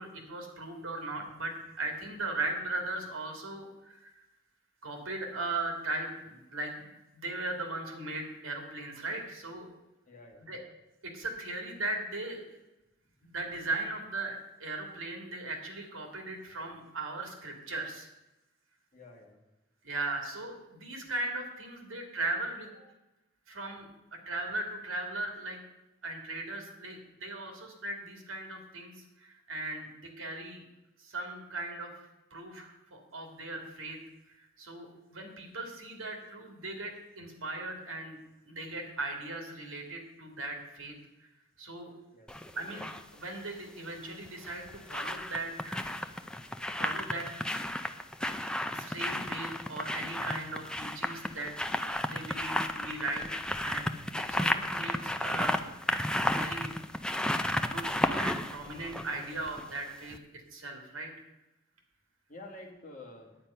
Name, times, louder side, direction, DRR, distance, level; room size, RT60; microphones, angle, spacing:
voice 1, 0.0-4.1 4.8-9.7 10.5-10.6 11.0-12.4 13.2-18.1 19.8-22.7 23.5-23.9 24.3-25.6 26.0-28.9 29.2-30.6 31.0-34.0 34.3-38.2 38.5-40.9 41.6-41.9 42.6-45.8 46.8-47.3 48.7-51.5 52.0-53.9 54.3-55.9 56.2-56.7 57.3-61.3, right 2 dB, 80° right, 3 dB, 2.4 m, -38 dB
voice 2, 10.1-10.5 18.9-19.4 42.1-42.4 62.3-63.4, left 2 dB, 40° left, 1 dB, 1.9 m, -49 dB
sound 1, 42.3-43.0 44.3-59.8 60.1-60.2, left 1 dB, 5° left, 0.4 m, -33 dB
9.8 x 8.9 x 5.6 m, 0.97 s
head